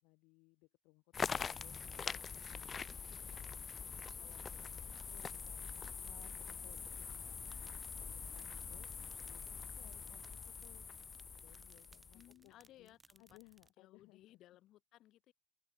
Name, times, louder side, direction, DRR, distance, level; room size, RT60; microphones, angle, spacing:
voice 1, 0.0-10.9 11.2-14.4, left 27 dB, 70° left, 5.2 m, -65 dB
sound 1, 1.1-12.3, left 6 dB, 25° left, 1.4 m, -44 dB
sound 2, 4.9-13.7, right 3 dB, 15° right, 3.2 m, -68 dB
voice 2, 12.1-13.4 13.8-15.3, left 14 dB, 50° left, 4.4 m, -62 dB
open air
cardioid pair, 130°, 0 cm